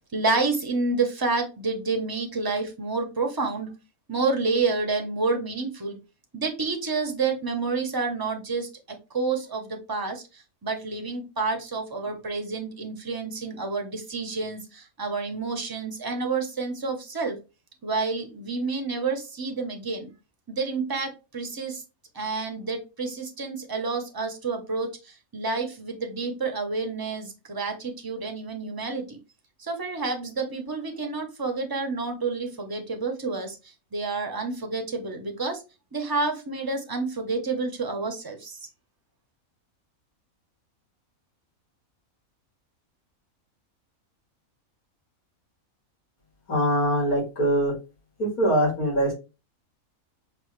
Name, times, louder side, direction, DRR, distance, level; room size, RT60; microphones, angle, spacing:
voice 1, 0.1-3.7 4.1-6.0 6.3-8.7 9.1-10.2 10.6-17.4 17.8-20.1 20.5-21.8 22.1-29.2 29.7-33.6 33.9-35.6 35.9-38.6, right 3 dB, 20° right, 3 dB, 0.6 m, -29 dB
voice 2, 46.5-47.7 48.2-49.1, equal, 85° left, -2 dB, 2.8 m, -23 dB
5.3 x 2.6 x 3.1 m, 0.29 s
omnidirectional pair, 1.5 m